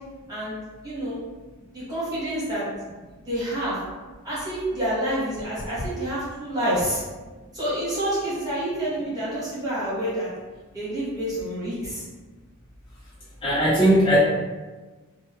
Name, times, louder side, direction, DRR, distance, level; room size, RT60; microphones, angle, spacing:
voice 1, 0.8-1.2 1.7-2.7 3.3-3.8 4.2-7.0 7.5-10.3 10.7-12.0, right 1 dB, 15° right, -10 dB, 1.3 m, -28 dB
voice 2, 13.4-14.2, right 1 dB, 20° left, -8 dB, 0.4 m, -18 dB
2.7 x 2.1 x 3.2 m, 1.3 s
head